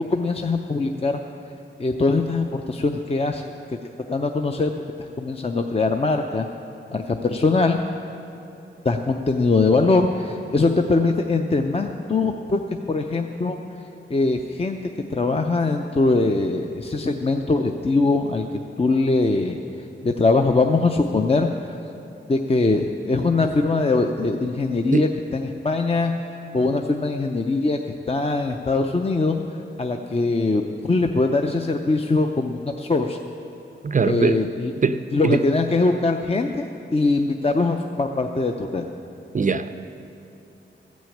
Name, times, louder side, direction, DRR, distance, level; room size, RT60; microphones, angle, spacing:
voice 1, 0.1-1.2 1.8-3.4 4.1-4.7 5.2-6.5 6.9-7.8 8.8-12.6 12.9-13.6 14.1-14.8 15.1-18.4 18.8-19.6 20.0-21.5 22.3-26.1 26.5-27.8 28.1-29.4 29.8-33.2 34.0-34.7 35.1-36.7 36.9-38.8, left 3 dB, 30° left, 4 dB, 0.5 m, -22 dB
voice 2, 33.8-34.4 34.8-35.4 39.3-39.8, right 5 dB, 40° right, 10 dB, 0.4 m, -21 dB
14.5 x 6.2 x 8.5 m, 3.0 s
wide cardioid pair, 95°, 20 cm